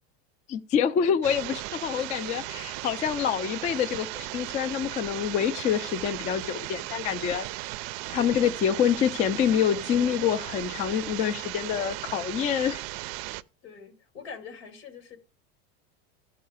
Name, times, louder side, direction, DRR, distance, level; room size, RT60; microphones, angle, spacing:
voice 1, 0.5-7.5 8.1-12.8, left 8 dB, 25° left, 0.3 m, -26 dB
sound 1, 1.2-13.4, right 18 dB, 55° right, 0.4 m, -36 dB
voice 2, 13.6-15.2, left 6 dB, 90° left, 2.2 m, -44 dB
12.5 x 4.7 x 4.8 m
supercardioid pair, 145°, 30 cm